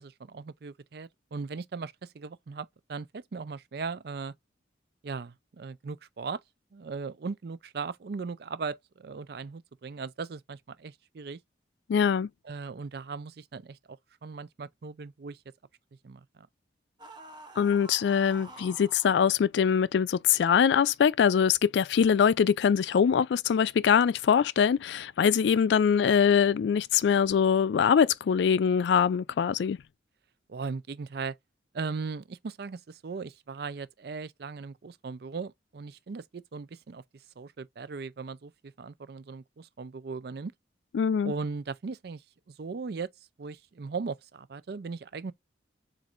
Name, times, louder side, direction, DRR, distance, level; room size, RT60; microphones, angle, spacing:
voice 1, 0.0-4.3 5.0-6.4 6.7-11.4 12.4-15.4 16.0-16.2 30.5-31.4 31.7-37.0 37.4-40.5 41.2-42.2 42.6-43.1 43.4-45.3, right 4 dB, 55° right, 0.4 m, -38 dB
voice 2, 11.9-12.3 17.6-29.8 40.9-41.3, left 7 dB, 70° left, 0.3 m, -23 dB
sound 1, 17.0-19.2, right 2 dB, 25° right, 0.9 m, -48 dB
7.3 x 2.6 x 2.5 m
head